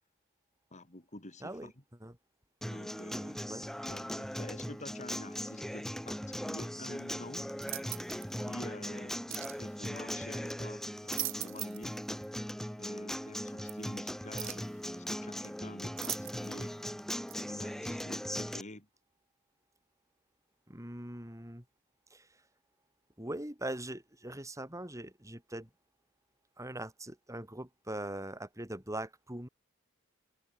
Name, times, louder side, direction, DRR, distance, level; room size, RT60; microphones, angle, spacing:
voice 1, 0.7-1.7 2.7-3.4 3.9-7.5 8.4-12.0 12.8-16.7 17.5-18.9, left 2 dB, 35° left, 4.0 m, -48 dB
voice 2, 1.4-1.7 2.0-2.2 3.1-3.6 20.7-21.7 22.1-22.4 23.2-25.7 26.6-29.5, right 1 dB, 15° right, 5.0 m, -41 dB
Acoustic guitar, 2.6-18.6, equal, ahead, 1.9 m, -39 dB
sound 1, 7.6-8.3 9.3-9.6 10.9-11.9 12.2-12.3 13.7-13.8 14.4-14.7 16.0-16.6 17.3-17.4, right 17 dB, 65° right, 2.1 m, -40 dB
head